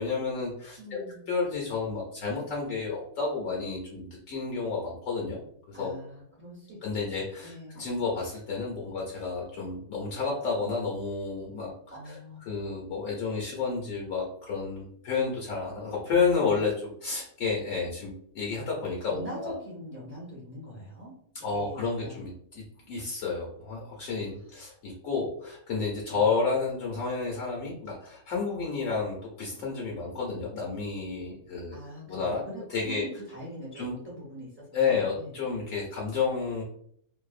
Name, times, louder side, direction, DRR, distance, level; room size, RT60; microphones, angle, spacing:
voice 1, 0.0-5.4 5.7-5.9 6.8-19.5 21.3-31.8 32.1-33.0 33.7-33.9 34.7-36.6, left 4 dB, 70° left, -3 dB, 1.0 m, -31 dB
voice 2, 0.8-1.3 5.7-7.1 7.4-7.8 11.9-12.4 19.1-21.1 21.5-22.2 26.1-26.3 31.7-35.3, equal, 10° right, -6 dB, 0.8 m, -43 dB
2.6 x 2.1 x 2.4 m, 0.65 s
omnidirectional pair, 1.5 m